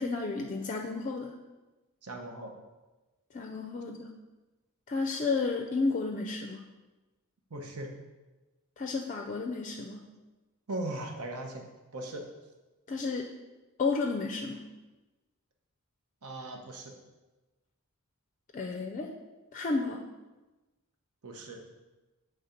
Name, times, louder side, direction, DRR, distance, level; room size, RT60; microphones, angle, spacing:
voice 1, 0.0-1.3 3.3-4.1 4.9-6.6 8.8-10.1 12.9-13.3 13.8-14.6 18.5-19.1 19.5-20.0, left 3 dB, 35° left, 3 dB, 0.4 m, -32 dB
voice 2, 2.0-2.6 7.5-7.9 10.7-11.7 11.9-12.2 16.2-17.0 21.2-21.6, right 1 dB, 80° right, 3 dB, 0.9 m, -38 dB
7.0 x 3.4 x 5.1 m, 1.1 s
head